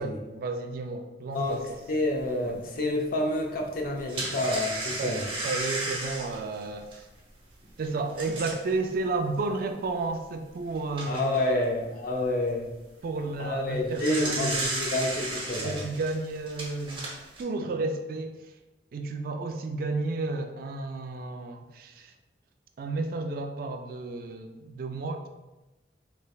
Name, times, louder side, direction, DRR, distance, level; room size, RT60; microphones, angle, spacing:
voice 1, 0.0-1.8 2.4-2.6 5.0-7.1 7.8-11.6 13.0-15.0 15.6-18.5 18.9-22.1 22.8-25.3, right 3 dB, 55° right, 6 dB, 0.3 m, -32 dB
sound 1, 1.5-1.6 2.2-2.3 3.7-8.7 9.4-9.5 9.8-9.9 10.6-11.4 13.6-17.4, right 2 dB, 30° right, 0.7 m, -34 dB
voice 2, 1.9-5.2 11.1-12.7 13.4-15.8, left 1 dB, 50° left, 1 dB, 0.5 m, -29 dB
3.2 x 3.1 x 2.3 m, 1.0 s
head